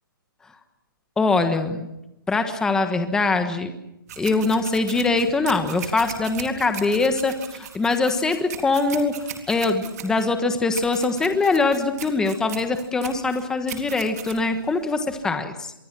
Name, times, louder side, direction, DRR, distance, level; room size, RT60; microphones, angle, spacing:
voice 1, 1.2-1.9 2.3-3.7 4.2-9.1 9.5-15.7, left 3 dB, 5° left, 7 dB, 1.3 m, -22 dB
sound 1, 4.1-15.2, right 8 dB, 45° right, 3.8 m, -38 dB
26.5 x 23.5 x 6.1 m, 0.90 s
hypercardioid pair, 165°, 12 cm